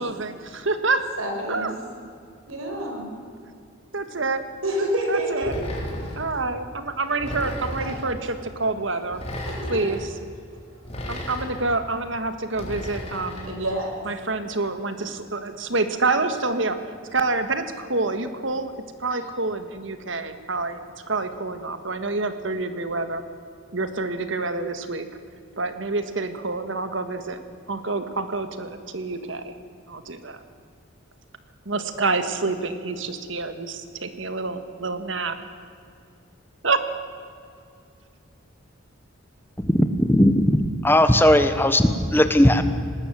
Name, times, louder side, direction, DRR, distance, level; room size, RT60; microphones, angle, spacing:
voice 1, 0.0-1.1 1.5-1.7 3.9-4.4 5.1-5.5 6.2-9.2 9.7-10.0 11.1-13.6 14.1-16.8 17.1-18.7 19.0-20.8 21.1-23.2 23.7-25.1 25.6-27.4 27.7-29.5 29.9-30.4 31.7-35.3 36.6-36.8, right 3 dB, 65° right, 9 dB, 1.7 m, -27 dB
voice 2, 1.2-1.7 2.5-3.1 4.6-5.5 7.6-7.9 9.5-10.0 13.4-14.0 19.1-19.2, right 1 dB, 85° right, 2 dB, 5.3 m, -28 dB
sound 1, 5.4-6.3 7.2-8.1 9.1-10.0 10.9-11.7 12.5-13.5, equal, 30° left, 3.7 m, -33 dB
voice 3, 39.7-40.6 40.8-42.6, left 1 dB, 10° left, 9 dB, 1.1 m, -17 dB
19.5 x 19.0 x 7.7 m, 2.4 s
head